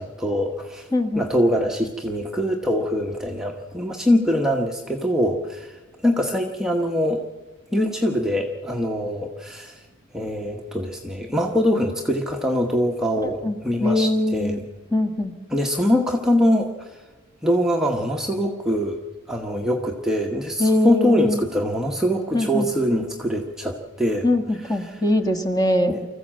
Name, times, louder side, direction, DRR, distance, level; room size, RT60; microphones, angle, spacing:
voice 1, 0.0-0.9 1.2-7.2 7.7-9.8 10.1-14.6 15.5-16.9 17.4-19.0 19.3-24.3 24.9-25.0 25.9-26.1, equal, 5° right, 0 dB, 1.1 m, -23 dB
voice 2, 0.9-1.2 13.2-14.6 14.9-15.3 20.6-21.4 22.3-22.7 24.2-26.0, left 1 dB, 15° left, 6 dB, 1.6 m, -22 dB
25.0 x 14.5 x 7.5 m, 1.3 s
head